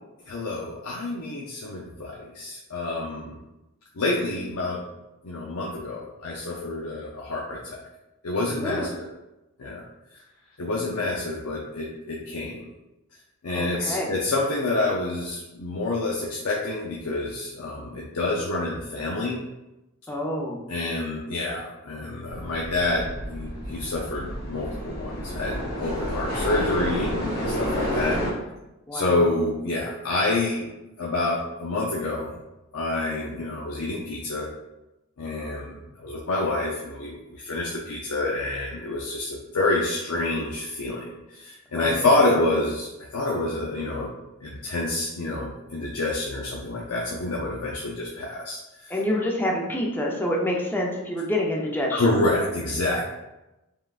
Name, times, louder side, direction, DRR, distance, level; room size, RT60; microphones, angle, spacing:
voice 1, 0.3-3.4 4.0-4.8 5.2-7.8 8.2-9.1 9.6-9.8 10.6-12.7 13.4-19.4 20.7-28.2 28.9-30.7 31.0-32.4 32.7-34.5 35.2-44.1 44.4-48.9 51.9-53.0, left 2 dB, 80° left, -3 dB, 0.6 m, -28 dB
voice 2, 13.5-14.2 20.1-20.6 28.9-29.2 41.8-42.4 48.9-52.3, left 1 dB, 10° left, -1 dB, 0.6 m, -27 dB
sound 1, 22.3-28.3, equal, 45° left, 1.3 m, -30 dB
5.4 x 3.7 x 2.4 m, 0.98 s
head